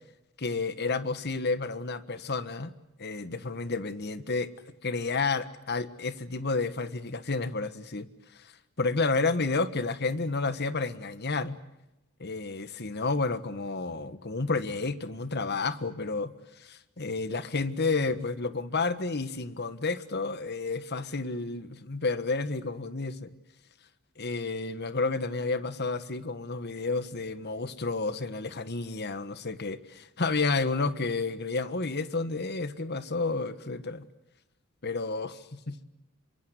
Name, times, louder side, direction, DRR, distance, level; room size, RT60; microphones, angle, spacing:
voice 1, 0.4-2.7 3.0-4.5 4.8-8.1 8.3-8.5 8.8-11.6 12.2-16.3 16.6-23.3 24.2-34.1 34.8-35.7, left 3 dB, 50° left, 13 dB, 1.5 m, -31 dB
27.0 x 24.0 x 8.1 m, 0.93 s
head